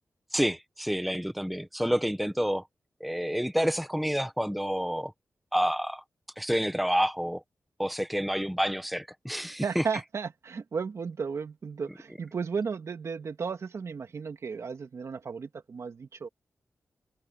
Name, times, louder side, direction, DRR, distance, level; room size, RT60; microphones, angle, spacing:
voice 1, 0.3-2.6 3.0-5.1 5.5-6.0 6.4-7.4 7.8-9.8, equal, ahead, 1.5 m, -28 dB
voice 2, 9.6-16.3, right 5 dB, 65° right, 2.3 m, -34 dB
wide cardioid pair, 100°, 5 cm